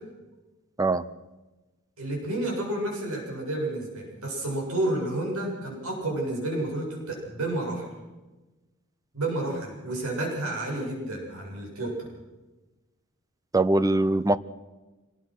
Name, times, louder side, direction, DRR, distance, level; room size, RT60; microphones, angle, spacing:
voice 1, 2.0-7.9 9.1-12.1, right 1 dB, 75° right, -1 dB, 7.5 m, -30 dB
voice 2, 13.5-14.4, right 2 dB, 15° right, 15 dB, 0.7 m, -22 dB
26.0 x 19.0 x 6.2 m, 1.1 s
head